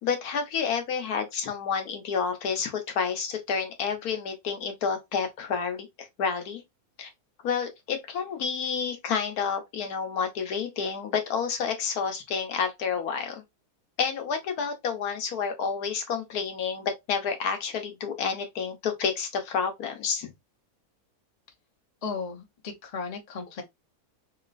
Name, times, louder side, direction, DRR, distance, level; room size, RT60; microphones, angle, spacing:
voice 1, 0.0-6.6 7.0-7.1 7.4-13.4 14.0-20.3, left 6 dB, 70° left, 1.2 m, -29 dB
voice 2, 22.0-23.6, left 5 dB, 45° left, 0.5 m, -35 dB
3.0 x 2.8 x 2.4 m
omnidirectional pair, 1.7 m